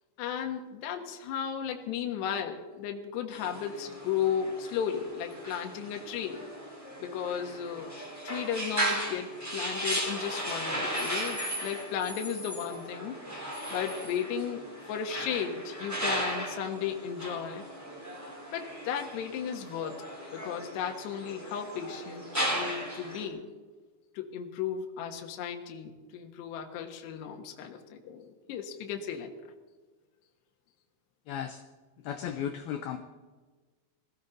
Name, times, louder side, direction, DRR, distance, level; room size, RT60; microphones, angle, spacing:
voice 1, 0.2-6.4 7.0-7.9 8.2-13.2 13.7-17.6 18.5-20.1 20.3-23.5 24.1-29.3, left 8 dB, 70° left, 3 dB, 3.3 m, -35 dB
sound 1, 3.3-23.3, right 1 dB, 5° right, 2.4 m, -36 dB
voice 2, 31.3-31.6 32.0-33.0, left 9 dB, 90° left, 7 dB, 2.1 m, -35 dB
21.5 x 15.5 x 4.0 m, 1.3 s
omnidirectional pair, 5.5 m